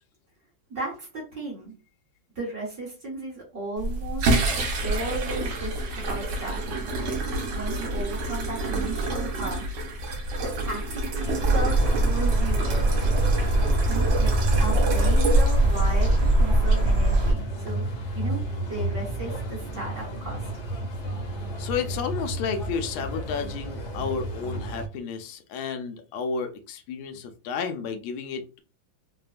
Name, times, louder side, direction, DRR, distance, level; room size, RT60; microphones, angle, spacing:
voice 1, 0.7-1.7 2.3-4.4 4.8-7.2 7.5-9.6 10.4-11.8 12.0-13.1 13.9-14.3 14.6-17.4 17.6-17.8 18.1-18.4 18.7-20.5, right 2 dB, 40° right, -3 dB, 1.5 m, -35 dB
sound 1, 3.8-16.1, right 2 dB, 65° right, 1.3 m, -29 dB
sound 2, 11.2-24.9, right 1 dB, 60° left, 1.2 m, -32 dB
sound 3, 11.4-17.3, right 1 dB, 85° right, 0.5 m, -21 dB
voice 2, 21.6-28.6, left 6 dB, 90° left, 6 dB, 1.4 m, -32 dB
3.4 x 2.2 x 2.4 m, 0.33 s
omnidirectional pair, 2.2 m